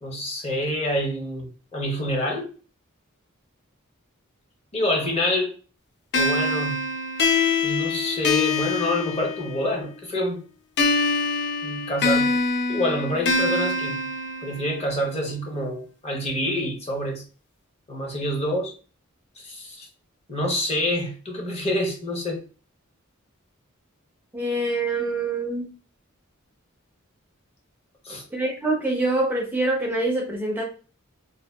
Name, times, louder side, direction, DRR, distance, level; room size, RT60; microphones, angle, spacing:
voice 1, 0.0-2.5 4.7-5.5 6.1-6.8 7.6-10.4 11.6-12.3 12.7-14.1 14.4-17.2 17.9-18.7 19.4-19.9 20.3-22.4 28.0-28.2, left 1 dB, 30° left, 1 dB, 0.8 m, -27 dB
sound 1, 6.1-9.8 10.8-14.8, left 3 dB, 55° left, 0.4 m, -24 dB
voice 2, 24.3-25.7 28.3-30.6, right 2 dB, 10° right, -1 dB, 0.4 m, -25 dB
2.7 x 2.2 x 2.2 m, 0.35 s
head